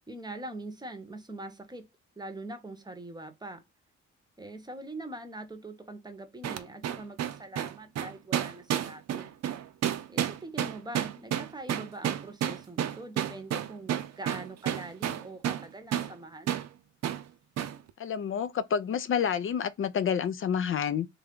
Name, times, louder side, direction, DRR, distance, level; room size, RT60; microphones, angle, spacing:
voice 1, 0.1-1.9 2.2-3.6 4.4-9.3 10.1-16.5, right 2 dB, 15° right, 0.8 m, -43 dB
sound 1, 6.4-15.7 15.9-16.1 16.5-16.7 17.0-17.2 17.6-17.8, right 10 dB, 60° right, 0.5 m, -31 dB
voice 2, 18.0-21.1, left 7 dB, 45° left, 0.4 m, -29 dB
3.3 x 2.4 x 3.6 m
cardioid pair, 90°, 30 cm